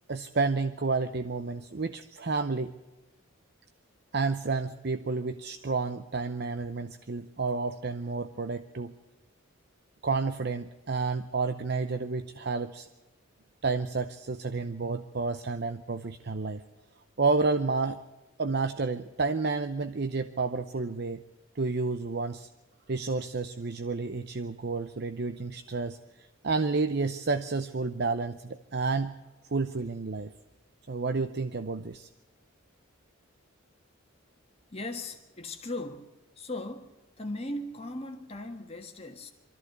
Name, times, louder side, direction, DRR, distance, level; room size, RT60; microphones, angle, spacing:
voice 1, 0.1-2.7 4.1-8.9 10.0-12.9 13.6-16.6 17.2-18.0 18.4-21.2 21.6-22.5 22.9-26.0 26.4-29.1 29.5-30.3 30.9-32.1, right 4 dB, 50° right, 10 dB, 0.7 m, -30 dB
voice 2, 34.7-36.0 36.4-39.3, left 2 dB, 30° left, 4 dB, 1.5 m, -38 dB
23.5 x 14.0 x 8.1 m, 1.1 s
head